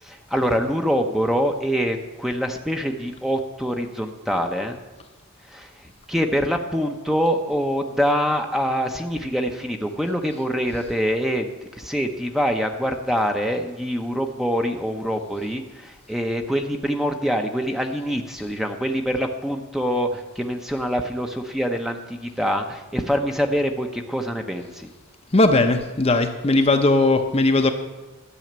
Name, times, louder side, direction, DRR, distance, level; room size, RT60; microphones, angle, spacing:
voice 1, 0.0-4.8 5.5-24.9, equal, ahead, 4 dB, 0.8 m, -25 dB
voice 2, 25.3-27.7, left 2 dB, 30° left, 6 dB, 0.7 m, -18 dB
12.5 x 6.3 x 8.8 m, 1.1 s
head